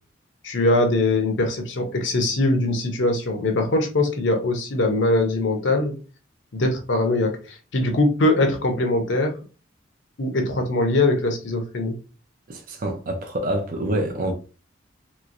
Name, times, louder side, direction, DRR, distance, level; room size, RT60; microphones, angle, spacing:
voice 1, 0.4-6.0 6.5-9.3 10.2-12.0, left 2 dB, 75° left, 0.7 m, -22 dB
voice 2, 12.5-14.3, right 1 dB, 45° right, 0.5 m, -26 dB
3.0 x 3.0 x 2.5 m
head